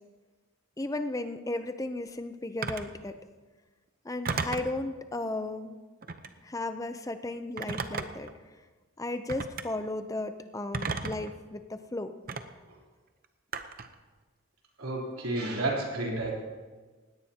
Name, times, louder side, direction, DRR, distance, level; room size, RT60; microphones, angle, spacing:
voice 1, 0.8-3.2 4.0-5.8 6.4-8.3 9.0-12.1, left 2 dB, 15° left, 9 dB, 0.5 m, -35 dB
Telephone, 2.6-2.9 4.2-4.8 6.0-6.4 7.6-8.3 9.3-9.7 10.7-11.3 12.3-12.4 13.5-13.9, right 4 dB, 40° right, 0.7 m, -33 dB
voice 2, 14.8-16.4, right 2 dB, 75° right, -2 dB, 3.4 m, -31 dB
19.0 x 17.0 x 2.9 m, 1.4 s
head